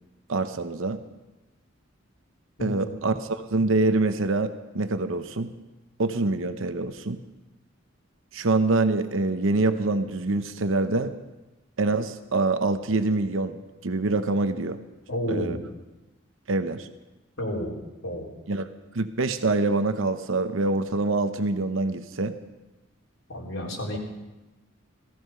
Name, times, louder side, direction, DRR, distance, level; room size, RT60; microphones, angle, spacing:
voice 1, 0.3-1.0 2.6-5.5 6.0-7.2 8.3-11.1 11.8-14.8 15.3-15.6 16.5-16.9 18.5-18.7 18.9-22.3, right 3 dB, 80° right, 9 dB, 0.8 m, -25 dB
voice 2, 2.6-3.1 15.1-15.6 17.4-17.7 18.0-18.3 23.3-24.0, equal, 80° left, -4 dB, 4.0 m, -31 dB
17.5 x 14.5 x 5.6 m, 1.1 s
head